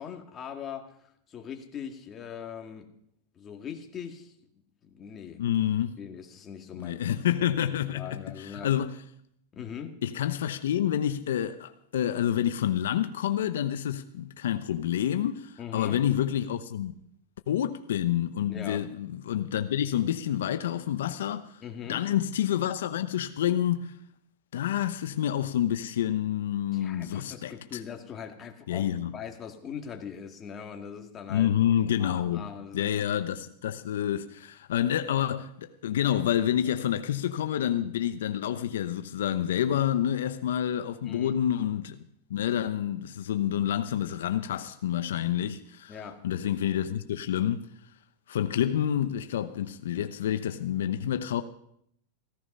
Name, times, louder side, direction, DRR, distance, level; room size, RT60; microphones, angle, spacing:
voice 1, 0.0-2.9 3.4-4.3 4.8-5.4 6.0-7.0 7.7-8.7 9.5-9.9 15.6-16.0 18.5-18.9 21.6-22.0 26.7-31.5 32.0-33.1 41.0-41.4 45.9-46.2, left 8 dB, 25° left, 2.0 m, -41 dB
voice 2, 5.4-6.0 6.8-8.9 10.0-16.9 17.5-21.6 21.9-23.9 24.5-27.8 28.7-29.2 31.3-32.5 32.7-42.0 42.3-45.9 46.2-47.7 48.3-51.4, left 10 dB, 85° left, 0.8 m, -28 dB
16.0 x 14.5 x 5.5 m
supercardioid pair, 135°, 0 cm